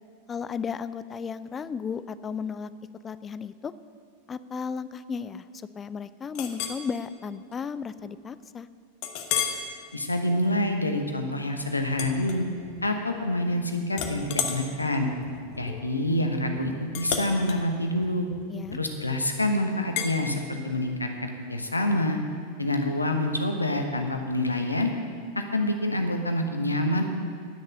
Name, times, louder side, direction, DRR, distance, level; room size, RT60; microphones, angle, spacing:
voice 1, 0.3-2.7 3.0-3.7 4.3-5.5 5.8-8.7 18.5-18.8, left 6 dB, 20° left, 15 dB, 0.4 m, -34 dB
Chink clink, 6.3-6.8 7.3-7.5 8.0-8.1 9.0-9.7 10.2-10.4 11.9-12.9 13.2-13.6 13.9-19.0 20.0-20.2, left 8 dB, 45° left, 1.1 m, -33 dB
voice 2, 9.9-12.5 12.8-15.1 15.6-18.3 18.7-22.2 22.6-24.9 25.5-27.0, left 1 dB, 80° left, 4 dB, 1.1 m, -27 dB
10.0 x 6.6 x 8.8 m, 2.1 s
figure-of-eight pair, 90°, 0 cm